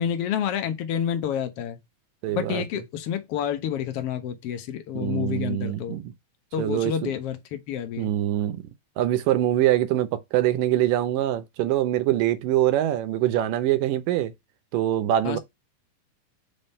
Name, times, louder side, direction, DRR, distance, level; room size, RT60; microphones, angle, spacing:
voice 1, 0.0-1.8 2.3-6.0 6.5-8.1 15.2-15.4, left 9 dB, 75° left, 1.3 m, -29 dB
voice 2, 2.2-2.6 5.0-6.1 6.6-7.1 8.0-8.6 9.0-14.3 14.7-15.4, right 13 dB, 75° right, 2.2 m, -24 dB
5.4 x 3.6 x 5.4 m
omnidirectional pair, 4.2 m